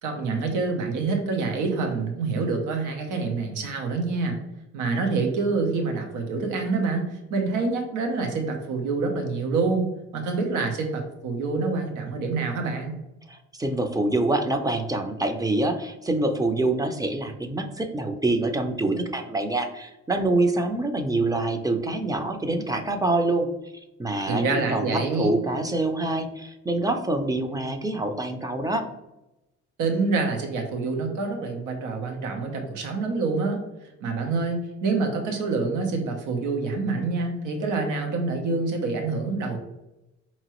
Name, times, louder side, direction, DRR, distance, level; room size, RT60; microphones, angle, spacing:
voice 1, 0.0-4.4 4.7-13.0 24.3-25.3 29.8-33.6 34.0-39.6, right 4 dB, 85° right, 3 dB, 0.8 m, -26 dB
voice 2, 13.3-23.5 24.0-28.9, right 2 dB, 10° right, 6 dB, 0.5 m, -26 dB
4.6 x 2.9 x 3.0 m, 0.94 s
cardioid pair, 90°, 30 cm